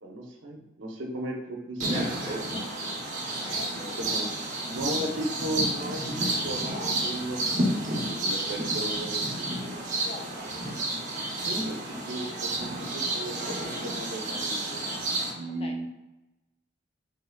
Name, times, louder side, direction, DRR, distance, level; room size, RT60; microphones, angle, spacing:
voice 1, 0.0-2.4 3.8-4.3 4.6-9.3 11.4-14.9 15.3-15.9, right 1 dB, 80° right, 0 dB, 0.7 m, -36 dB
sound 1, 1.8-15.3, right 1 dB, 40° right, 0.7 m, -30 dB
voice 2, 3.4-4.2 9.9-10.3 15.6-15.9, left 2 dB, 30° left, 2 dB, 0.4 m, -43 dB
3.4 x 3.3 x 2.2 m, 1.0 s
head